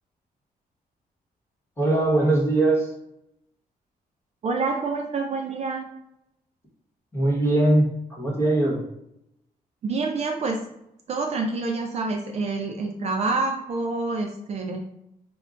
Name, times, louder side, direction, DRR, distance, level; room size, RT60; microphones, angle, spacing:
voice 1, 1.8-2.9 7.1-8.8, right 2 dB, 15° left, -3 dB, 1.0 m, -21 dB
voice 2, 4.4-5.9 9.8-10.7 11.1-14.8, right 3 dB, 45° right, 1 dB, 0.4 m, -27 dB
5.0 x 2.2 x 2.4 m, 0.80 s
wide cardioid pair, 175°, 16 cm